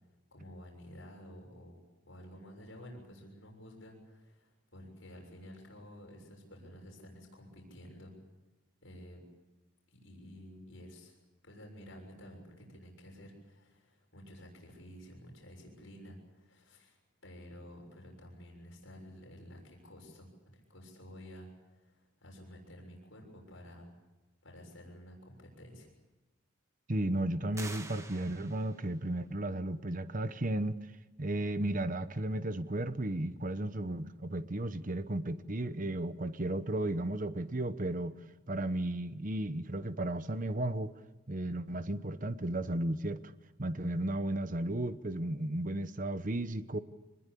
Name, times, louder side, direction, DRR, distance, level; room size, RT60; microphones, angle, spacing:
voice 1, 0.3-8.1 8.8-9.2 9.9-11.2 11.4-23.9 24.4-25.9, equal, 65° left, 6.9 m, -52 dB
voice 2, 26.9-30.8 31.2-38.2 38.5-40.9 41.3-43.3 43.6-46.8, right 1 dB, 40° right, 1.0 m, -34 dB
sound 1, 27.5-28.9, right 3 dB, 15° right, 1.4 m, -46 dB
25.0 x 21.0 x 8.5 m
head